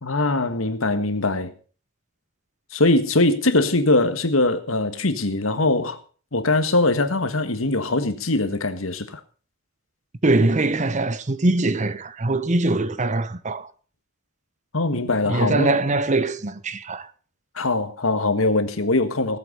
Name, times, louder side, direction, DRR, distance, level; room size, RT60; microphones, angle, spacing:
voice 1, 0.0-1.5 2.7-6.0 6.3-9.2 14.7-15.7 17.5-19.4, left 2 dB, 85° left, 1.7 m, -22 dB
voice 2, 10.2-13.7 14.9-15.0 15.3-17.1, right 2 dB, 35° right, 0.9 m, -22 dB
19.0 x 8.1 x 5.6 m
head